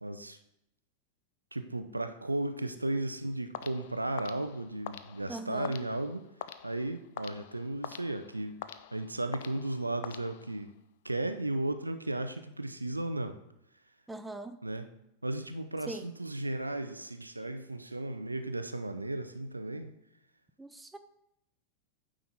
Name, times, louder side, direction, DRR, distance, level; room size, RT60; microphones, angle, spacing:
voice 1, 0.0-0.4 1.5-6.3 6.6-8.6 8.9-10.7 11.0-13.4 14.6-14.9 15.2-19.9, right 2 dB, 85° right, 9 dB, 0.4 m, -35 dB
sound 1, 3.5-10.8, left 11 dB, 55° left, 0.4 m, -46 dB
voice 2, 5.3-5.7 14.1-14.6 15.9-16.1 20.6-21.0, right 2 dB, 5° right, 8 dB, 0.5 m, -41 dB
9.2 x 3.8 x 4.1 m, 0.81 s
figure-of-eight pair, 90°, 0 cm